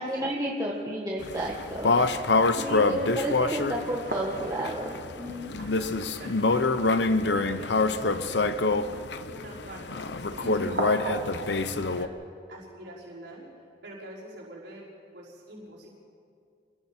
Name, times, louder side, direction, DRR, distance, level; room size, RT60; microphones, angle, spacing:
voice 1, 0.0-2.2 2.5-5.6 10.4-10.8, right 1 dB, 20° right, -3 dB, 1.6 m, -32 dB
sound 1, 1.2-12.1, left 3 dB, 75° left, 0.9 m, -26 dB
voice 2, 2.6-4.0 5.6-6.7 7.2-12.1 12.5-13.5 13.8-14.8 15.1-15.9, right 1 dB, 85° right, -8 dB, 5.6 m, -46 dB
sound 2, 4.1-6.4 6.6-6.7 7.1-7.3 10.7-11.8, right 3 dB, 60° right, 1.8 m, -36 dB
28.5 x 21.5 x 4.5 m, 2.4 s
head